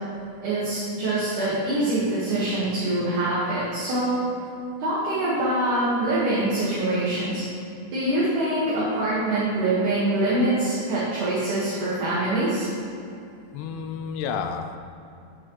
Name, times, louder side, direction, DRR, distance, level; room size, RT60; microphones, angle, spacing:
voice 1, 0.4-4.3 4.8-7.4 7.9-12.7, right 1 dB, 55° right, -9 dB, 2.9 m, -24 dB
voice 2, 13.5-14.8, left 6 dB, 80° left, 7 dB, 2.5 m, -30 dB
16.0 x 6.4 x 3.2 m, 2.6 s
omnidirectional pair, 4.8 m